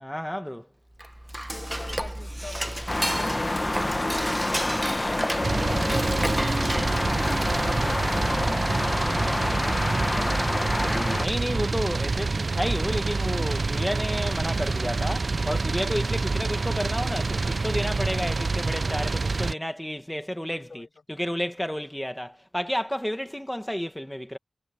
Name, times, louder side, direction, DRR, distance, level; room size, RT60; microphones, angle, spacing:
voice 1, 0.0-0.7 11.2-24.4, equal, 5° left, 1.5 m, -31 dB
Dishes pots and pans / Cutlery silverware, 0.9-7.8, right 1 dB, 10° right, 1.2 m, -32 dB
voice 2, 1.5-3.7 4.2-5.1 5.4-7.1 16.5-16.6 20.5-20.9, left 4 dB, 85° left, 7.7 m, -46 dB
sound 1, 2.9-11.2, left 1 dB, 30° left, 1.2 m, -27 dB
sound 2, 5.4-19.5, right 3 dB, 65° right, 0.4 m, -27 dB
wide cardioid pair, 60°, 0 cm